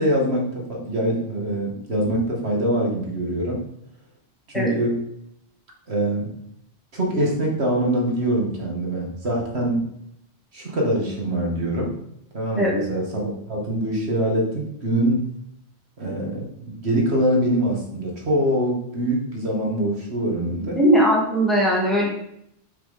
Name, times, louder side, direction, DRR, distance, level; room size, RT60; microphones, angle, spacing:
voice 1, 0.0-3.6 4.5-5.0 5.9-6.3 6.9-9.8 10.5-12.0 12.3-15.2 16.0-20.8, right 1 dB, 75° right, -2 dB, 2.4 m, -24 dB
voice 2, 20.8-22.1, equal, ahead, -4 dB, 2.6 m, -19 dB
6.1 x 5.8 x 5.5 m, 0.76 s
omnidirectional pair, 1.1 m